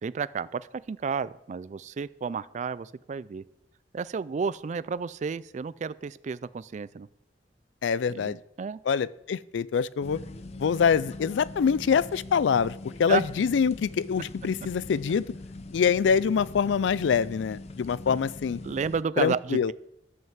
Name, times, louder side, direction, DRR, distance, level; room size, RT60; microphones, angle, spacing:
voice 1, 0.0-3.4 3.9-7.1 8.1-8.8 13.1-13.2 18.1-18.2 18.6-19.7, right 5 dB, 40° right, 18 dB, 0.3 m, -32 dB
voice 2, 7.8-8.4 8.9-10.2 10.6-15.2 15.7-18.6 19.2-19.7, left 6 dB, 90° left, 20 dB, 0.4 m, -25 dB
sound 1, 10.0-19.0, left 2 dB, 35° left, 0.6 m, -42 dB
11.0 x 5.6 x 7.3 m, 0.83 s
head